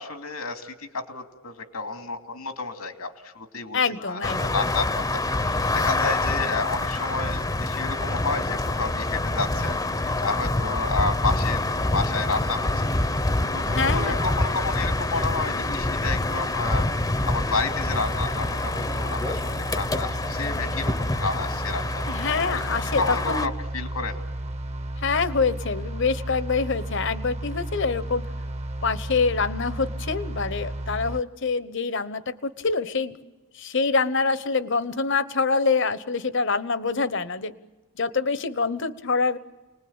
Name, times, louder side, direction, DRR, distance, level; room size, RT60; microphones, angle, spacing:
voice 1, 0.0-12.8 13.5-16.9 17.2-24.2, left 4 dB, 90° left, 6 dB, 2.7 m, -31 dB
voice 2, 3.7-4.5 13.7-14.2 22.1-23.5 25.0-28.2 28.8-33.2 33.5-37.5 38.0-39.4, left 4 dB, 55° left, 14 dB, 1.0 m, -25 dB
sound 1, 4.2-23.5, left 2 dB, 15° left, 0.8 m, -26 dB
sound 2, 17.9-31.2, right 1 dB, 30° right, 0.9 m, -33 dB
29.5 x 20.5 x 8.9 m, 1.2 s
head